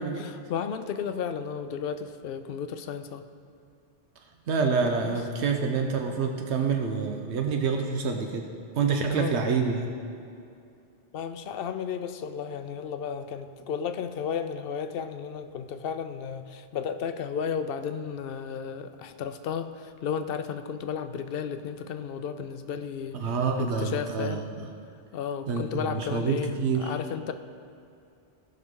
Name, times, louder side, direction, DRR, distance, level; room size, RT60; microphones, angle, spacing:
voice 1, 0.0-3.2 5.0-5.2 9.1-9.5 11.1-24.4 25.1-27.3, left 7 dB, 65° left, 9 dB, 0.7 m, -33 dB
voice 2, 4.5-8.4 8.8-9.9 23.1-24.7 25.5-26.9, right 5 dB, 90° right, 3 dB, 1.0 m, -27 dB
17.0 x 5.8 x 3.6 m, 2.5 s
omnidirectional pair, 1.1 m